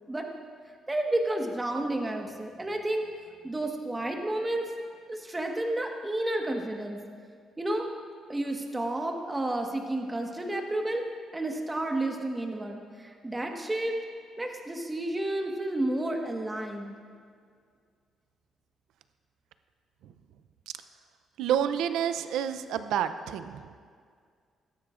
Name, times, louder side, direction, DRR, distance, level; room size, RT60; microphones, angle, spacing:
voice 1, 0.9-3.1 3.4-4.7 5.1-7.0 7.6-7.9 8.3-11.0 11.3-14.0 14.4-16.9, right 1 dB, 15° right, 2 dB, 1.4 m, -31 dB
voice 2, 21.4-23.8, right 9 dB, 85° right, 11 dB, 0.5 m, -29 dB
16.5 x 12.0 x 2.5 m, 2.1 s
cardioid pair, 90°, 0 cm